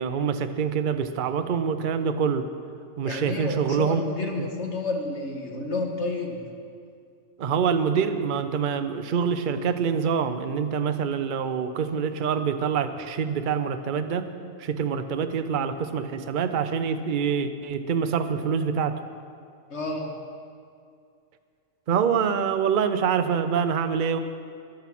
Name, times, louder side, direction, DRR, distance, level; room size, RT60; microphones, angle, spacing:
voice 1, 0.0-2.5 3.0-4.5 7.4-14.3 14.6-19.0 21.9-24.2, right 6 dB, 50° right, 9 dB, 0.7 m, -25 dB
voice 2, 3.0-6.5 19.7-20.2, left 3 dB, 60° left, 2 dB, 1.8 m, -30 dB
14.0 x 11.5 x 6.0 m, 2.3 s
omnidirectional pair, 1.3 m